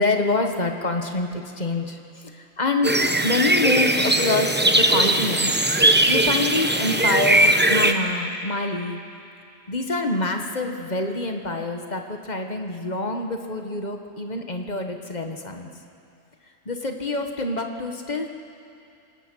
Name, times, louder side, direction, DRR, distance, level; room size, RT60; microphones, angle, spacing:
voice 1, 0.0-2.9 3.2-5.5 5.8-9.0 9.7-15.7 16.6-18.3, left 2 dB, 35° left, 4 dB, 1.4 m, -26 dB
sound 1, 2.8-7.9, right 1 dB, 10° right, 0.6 m, -19 dB
27.0 x 17.5 x 6.2 m, 2.6 s
omnidirectional pair, 1.4 m